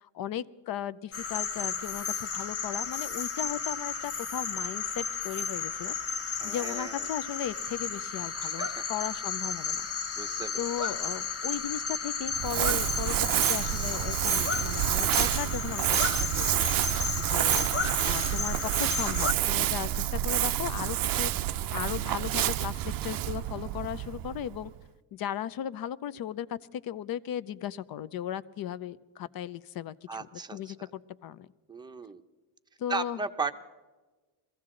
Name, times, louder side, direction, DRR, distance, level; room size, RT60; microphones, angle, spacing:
voice 1, 0.0-6.2 6.4-9.9 10.6-24.7 25.1-31.5 32.8-33.2, left 10 dB, 50° left, 0.6 m, -37 dB
sound 1, 1.1-19.3, left 5 dB, 30° left, 0.9 m, -33 dB
voice 2, 6.4-7.0 8.4-8.9 10.2-10.5 10.8-10.9 16.5-16.9 30.1-30.7 31.7-32.2 32.9-33.5, right 4 dB, 10° right, 0.7 m, -36 dB
Crumpling crinkling, 12.3-24.8, right 14 dB, 50° right, 0.5 m, -28 dB
23.5 x 15.5 x 3.8 m
cardioid pair, 135°, 45 cm